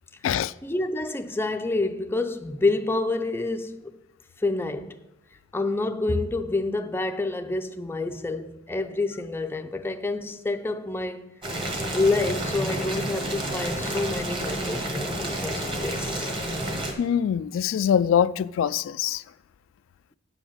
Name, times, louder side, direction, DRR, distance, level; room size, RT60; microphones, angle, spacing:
voice 1, 0.6-3.9 4.4-5.0 5.5-11.3 11.9-16.3, left 2 dB, 10° left, 0.4 m, -28 dB
Boiling, 11.4-16.9, right 1 dB, 25° right, 1.6 m, -30 dB
voice 2, 17.0-19.2, left 8 dB, 90° left, 0.3 m, -23 dB
8.7 x 5.1 x 7.1 m
head